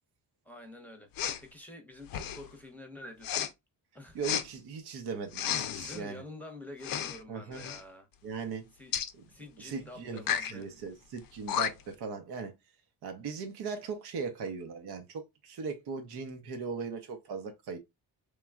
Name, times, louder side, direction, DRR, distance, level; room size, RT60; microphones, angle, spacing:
voice 1, 0.4-3.5 3.9-4.2 5.7-8.1 8.7-8.9 9.3-10.7, left 1 dB, 5° left, 0.8 m, -48 dB
Respiratory sounds, 1.2-1.4 2.1-2.5 3.2-3.5 4.2-4.5 5.3-6.0 6.8-7.2 7.5-7.8 8.9-9.1 10.2-10.5 11.2-11.3 11.5-12.0, left 9 dB, 60° left, 0.5 m, -32 dB
voice 2, 4.1-6.2 7.3-7.6 8.2-8.7 9.1-9.2 9.6-10.2 10.5-12.5 13.0-17.8, right 5 dB, 75° right, 0.7 m, -38 dB
3.1 x 2.3 x 2.3 m
cardioid pair, 85°, 39 cm